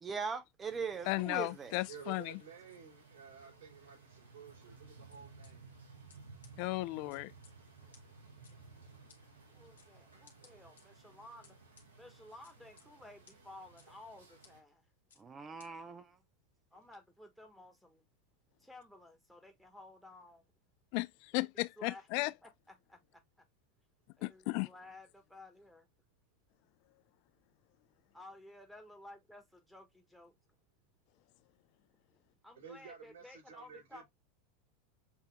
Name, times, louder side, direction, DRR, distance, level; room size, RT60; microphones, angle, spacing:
voice 1, 0.0-1.8 15.2-16.2, right 5 dB, 25° right, 0.7 m, -40 dB
sound 1, 0.6-14.6, right 4 dB, 90° right, 1.7 m, -58 dB
voice 2, 1.1-2.4 6.6-7.3 20.9-22.3 24.2-24.7, left 22 dB, 55° left, 0.3 m, -35 dB
voice 3, 1.8-5.6 10.4-10.6 32.5-34.1, right 7 dB, 70° right, 3.3 m, -53 dB
sound 2, 5.1-5.5 6.1-6.2 6.4-6.5 7.1-7.5 7.9-8.0 8.4-8.5 9.1-9.2 9.8-9.9 10.3-10.8 11.4-11.9 12.4-12.9 13.3-13.4 13.8-13.9 14.4-14.5 15.1-15.2 15.6-15.7, left 5 dB, 85° left, 1.6 m, -61 dB
voice 4, 9.5-11.6 12.0-14.8 16.7-18.0 18.6-20.5 21.3-21.5 21.8-23.2 24.2-25.9 28.1-30.3 32.4-34.1, left 1 dB, ahead, 1.5 m, -55 dB
7.0 x 2.8 x 2.2 m
hypercardioid pair, 95°, 0 cm